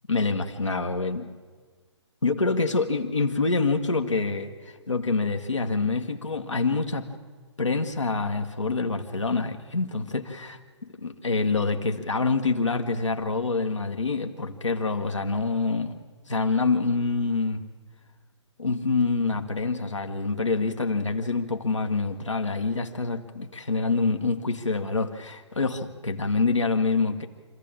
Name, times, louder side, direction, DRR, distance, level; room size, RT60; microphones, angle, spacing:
voice 1, 0.1-1.3 2.2-7.1 7.6-10.6 11.0-16.0 16.3-17.6 18.6-27.3, left 3 dB, 85° left, 3 dB, 1.5 m, -26 dB
25.5 x 14.5 x 8.7 m, 1.5 s
figure-of-eight pair, 125°, 15 cm